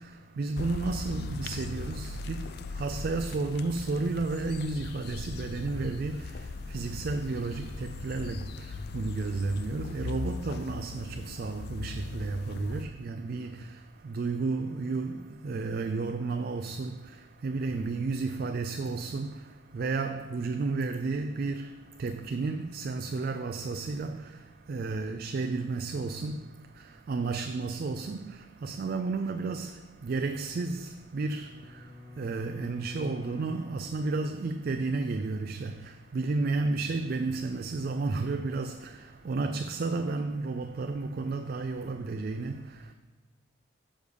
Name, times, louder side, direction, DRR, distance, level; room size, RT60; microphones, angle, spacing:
voice 1, 0.0-42.9, right 3 dB, 50° right, 0.3 m, -32 dB
sound 1, 0.6-12.8, left 3 dB, 55° left, 0.3 m, -39 dB
Bowed string instrument, 30.6-33.7, left 2 dB, 10° right, 1.6 m, -46 dB
6.3 x 5.1 x 6.7 m
head